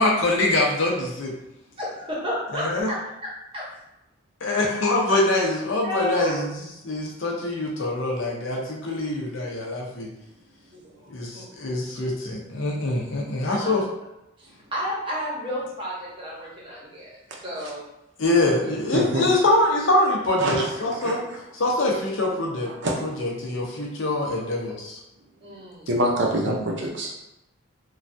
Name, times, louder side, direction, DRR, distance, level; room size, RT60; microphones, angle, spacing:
voice 1, 0.0-1.3 2.5-2.9 4.4-10.1 11.1-13.8 18.2-21.2 21.5-22.7 23.0-25.0 26.5-26.6, left 2 dB, 65° left, -1 dB, 0.6 m, -24 dB
voice 2, 1.8-3.7 5.8-6.4 10.7-11.8 13.5-13.8 14.4-17.2 17.4-17.9 18.6-18.8 25.4-25.9 26.2-26.3, equal, 25° right, -6 dB, 0.8 m, -33 dB
voice 3, 18.9-19.3 20.4-21.2 22.8-22.9 25.9-27.2, right 1 dB, 55° right, -1 dB, 0.6 m, -25 dB
3.2 x 2.3 x 2.6 m, 0.89 s
head